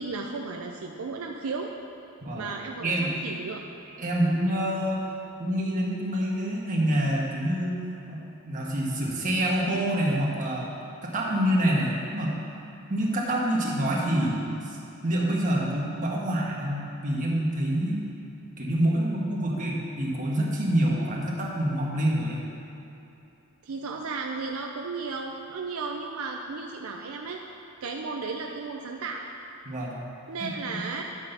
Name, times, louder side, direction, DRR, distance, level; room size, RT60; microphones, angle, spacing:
voice 1, 0.0-1.7 2.3-3.7 23.6-27.4 27.8-29.2 30.3-31.0, right 4 dB, 75° right, 1 dB, 0.5 m, -34 dB
voice 2, 2.2-2.5 2.8-3.1 4.0-5.0 5.4-10.7 11.0-12.4 12.9-14.8 15.0-18.1 18.6-22.4 29.6-30.0 30.4-30.8, right 1 dB, 40° right, -4 dB, 1.5 m, -27 dB
10.5 x 4.1 x 6.7 m, 2.9 s
head